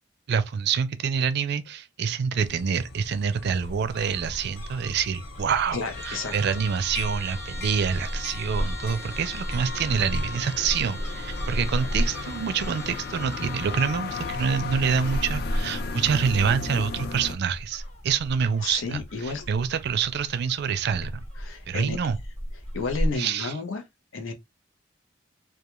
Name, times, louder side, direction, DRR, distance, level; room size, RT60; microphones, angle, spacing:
voice 1, 0.3-21.2 21.7-22.2 23.2-23.5, right 6 dB, 55° right, 0.4 m, -26 dB
sound 1, 2.4-17.4, left 4 dB, 55° left, 0.4 m, -37 dB
sound 2, 3.6-23.2, equal, 40° left, 1.0 m, -34 dB
voice 2, 5.7-6.3 18.6-19.5 21.4-22.0 22.7-23.8 24.1-24.3, left 4 dB, 85° left, 0.7 m, -31 dB
Trumpet, 5.9-14.0, left 1 dB, 10° left, 0.6 m, -42 dB
2.3 x 2.3 x 2.9 m
head